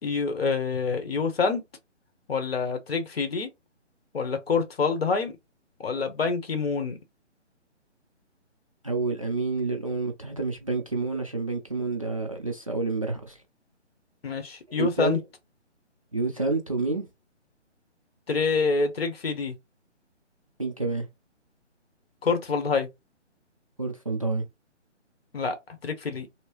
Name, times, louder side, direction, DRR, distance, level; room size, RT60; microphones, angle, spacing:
voice 1, 0.0-1.6 2.3-3.5 4.1-5.3 5.8-7.0 14.2-15.2 18.3-19.6 22.2-22.9 25.3-25.6 25.8-26.3, left 4 dB, 55° left, 1.1 m, -26 dB
voice 2, 8.8-13.3 14.8-15.2 16.1-17.0 20.6-21.1 23.8-24.4, right 3 dB, 30° right, 0.4 m, -28 dB
3.2 x 2.9 x 3.0 m
figure-of-eight pair, 145°, 36 cm